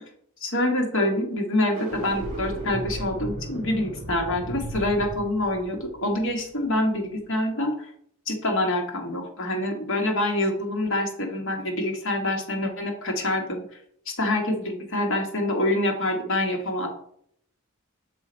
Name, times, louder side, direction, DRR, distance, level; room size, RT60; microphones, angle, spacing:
voice 1, 0.4-7.9 8.3-13.6 14.1-16.9, left 1 dB, 65° left, 1 dB, 1.6 m, -26 dB
sound 1, 1.6-6.9, right 1 dB, 35° right, 1.7 m, -35 dB
6.2 x 4.4 x 5.1 m, 0.67 s
head